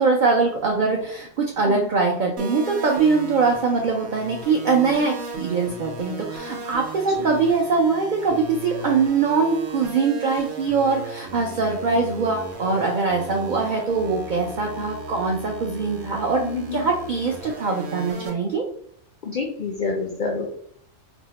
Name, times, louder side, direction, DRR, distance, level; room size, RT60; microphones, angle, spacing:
voice 1, 0.0-16.4 16.7-18.6, right 4 dB, 80° right, 0 dB, 0.4 m, -22 dB
sound 1, 2.4-18.3, right 3 dB, 60° right, 0.8 m, -36 dB
voice 2, 16.4-16.9 19.2-20.5, left 4 dB, 75° left, 0 dB, 0.4 m, -28 dB
2.7 x 2.1 x 3.9 m, 0.66 s
omnidirectional pair, 1.4 m